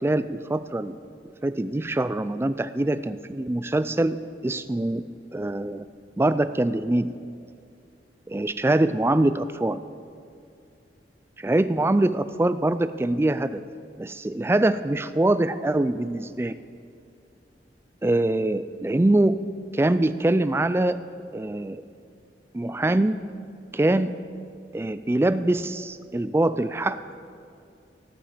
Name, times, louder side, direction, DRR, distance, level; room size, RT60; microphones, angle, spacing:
voice 1, 0.0-0.9 1.4-5.0 5.3-5.9 6.2-7.1 8.3-9.8 11.4-13.6 14.0-16.6 18.0-19.4 19.7-21.0 21.3-21.8 22.5-23.2 23.7-24.2 24.7-27.0, right 1 dB, 15° right, 13 dB, 0.3 m, -23 dB
18.0 x 7.1 x 5.0 m, 2.4 s
head